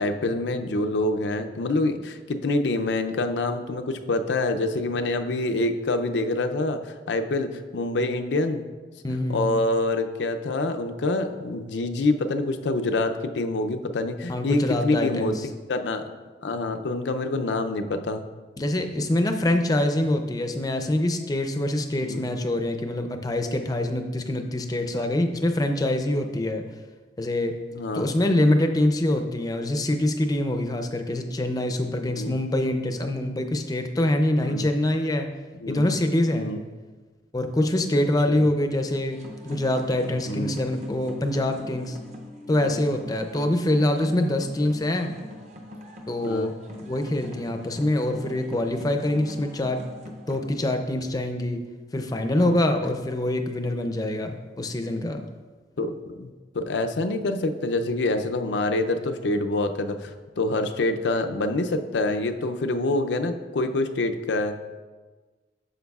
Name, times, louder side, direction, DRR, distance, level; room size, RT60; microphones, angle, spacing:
voice 1, 0.0-6.8 7.1-8.6 9.1-15.3 15.7-16.0 16.4-18.3 22.0-22.3 26.1-26.2 27.7-28.1 32.0-32.4 34.4-34.7 35.6-35.9 36.3-36.6 38.3-38.4 40.3-40.5 42.5-42.8 46.2-46.5 54.0-54.2 55.8-56.3 56.5-64.6, left 2 dB, 85° left, 7 dB, 0.5 m, -26 dB
voice 2, 9.0-9.5 14.3-15.4 18.6-26.6 27.2-27.6 27.9-35.3 35.7-36.5 37.3-39.2 39.4-42.0 42.5-45.1 46.1-49.8 50.3-51.6 51.9-55.2, left 1 dB, 20° left, 6 dB, 0.5 m, -25 dB
sound 1, 39.1-50.4, left 1 dB, 40° right, 0.8 m, -43 dB
9.2 x 6.4 x 2.4 m, 1.3 s
head